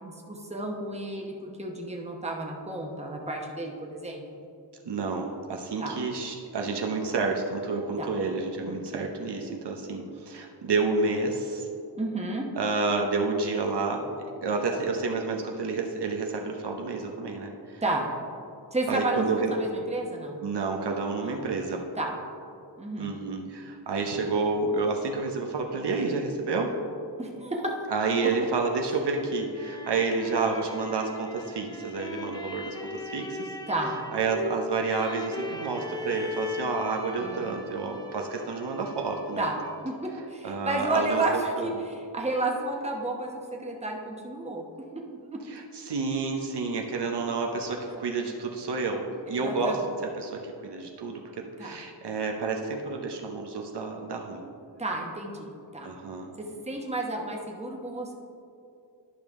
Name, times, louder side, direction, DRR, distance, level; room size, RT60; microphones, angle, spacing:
voice 1, 0.0-4.4 5.8-6.0 8.0-8.1 8.6-9.1 11.9-12.5 17.8-18.0 18.7-20.4 21.2-21.4 22.0-22.1 22.8-23.1 27.2-27.7 33.7-34.0 37.2-37.4 39.4-39.5 39.8-44.6 44.9-45.0 45.3-45.4 49.3-49.9 51.6-51.8 54.8-55.9 56.4-58.1, right 2 dB, 15° right, 0 dB, 1.0 m, -32 dB
voice 2, 4.8-11.7 12.6-14.1 14.4-17.8 18.9-19.5 20.4-21.9 23.0-26.8 27.9-33.5 34.1-39.5 40.4-41.7 45.5-54.5 55.8-56.3, right 4 dB, 65° right, 2 dB, 0.8 m, -29 dB
sound 1, 29.4-40.0, left 3 dB, 10° left, 0.6 m, -39 dB
11.0 x 5.2 x 3.6 m, 2.5 s
wide cardioid pair, 85°, 43 cm